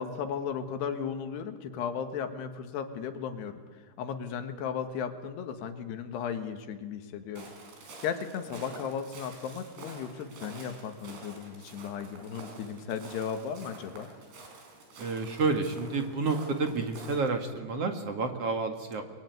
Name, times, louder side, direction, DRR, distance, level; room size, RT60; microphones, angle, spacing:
voice 1, 0.0-7.5 8.0-14.1, left 7 dB, 75° left, 8 dB, 3.6 m, -35 dB
Walk footsteps, 7.4-17.2, right 2 dB, 75° right, 6.8 m, -48 dB
voice 2, 15.0-19.1, right 4 dB, 45° right, 5 dB, 2.2 m, -30 dB
29.0 x 22.0 x 9.4 m, 1.5 s
omnidirectional pair, 4.8 m